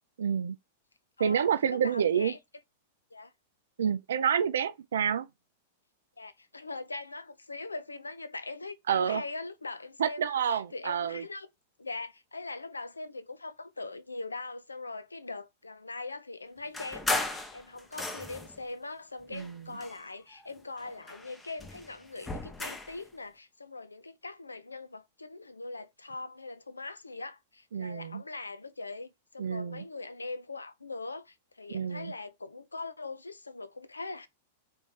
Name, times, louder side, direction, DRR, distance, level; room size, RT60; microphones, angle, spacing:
voice 1, 0.2-0.6 1.2-2.3 3.8-5.3 8.9-9.2 10.0-11.2 19.3-19.7 27.7-28.2 29.4-29.8 31.7-32.1, right 8 dB, 70° right, 0.4 m, -28 dB
voice 2, 1.2-2.4 3.1-3.3 6.2-10.2 10.5-11.5 11.8-34.3, left 3 dB, 85° left, 0.4 m, -41 dB
sound 1, 16.7-18.6 19.3-20.5 20.8-23.0, left 2 dB, 10° left, 0.6 m, -36 dB
3.1 x 2.7 x 3.6 m
figure-of-eight pair, 100°, 0 cm